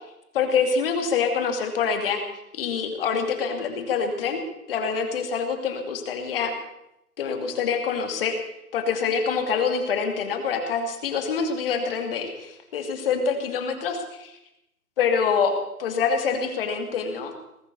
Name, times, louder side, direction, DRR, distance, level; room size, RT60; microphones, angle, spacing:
voice 1, 0.3-2.2 2.5-4.4 4.7-6.5 7.2-8.4 8.7-14.4 15.0-15.5 15.8-17.3, left 6 dB, 35° left, 6 dB, 2.6 m, -25 dB
20.0 x 10.5 x 6.9 m, 0.86 s
hypercardioid pair, 150°, 46 cm